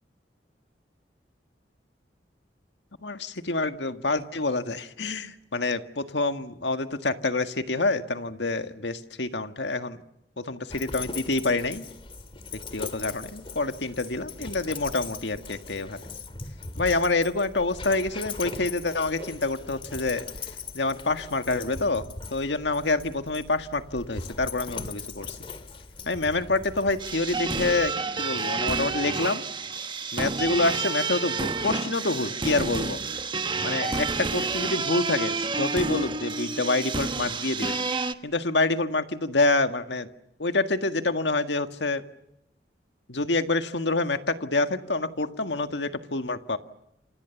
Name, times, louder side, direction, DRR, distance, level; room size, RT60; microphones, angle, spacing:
voice 1, 3.0-10.0 10.4-11.9 12.7-16.0 16.8-20.3 20.7-25.4 26.1-27.9 28.2-29.4 30.1-33.0 33.6-37.8 38.2-40.1 40.4-42.0 43.1-46.6, left 3 dB, 85° left, 8 dB, 1.7 m, -27 dB
Dog, 10.7-27.9, left 4 dB, 30° left, 2.1 m, -40 dB
sound 1, 27.0-38.1, right 4 dB, 25° right, 1.1 m, -29 dB
29.0 x 26.0 x 7.1 m, 0.83 s
head